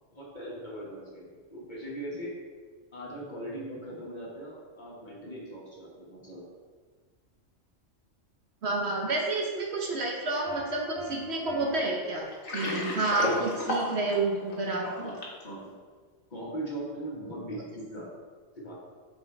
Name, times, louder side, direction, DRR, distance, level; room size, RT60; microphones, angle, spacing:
voice 1, 0.1-2.3 2.9-6.5 13.2-13.5 15.0-15.2 15.4-15.7 16.3-18.1 18.6-18.7, right 1 dB, 35° left, -5 dB, 1.8 m, -40 dB
voice 2, 8.6-15.1, right 2 dB, 60° right, -1 dB, 1.1 m, -30 dB
Piano, 10.4-13.0, right 2 dB, 30° right, 1.5 m, -45 dB
Water, 12.3-15.4, left 1 dB, 85° left, 1.8 m, -32 dB
8.5 x 4.7 x 3.2 m, 1.5 s
omnidirectional pair, 1.3 m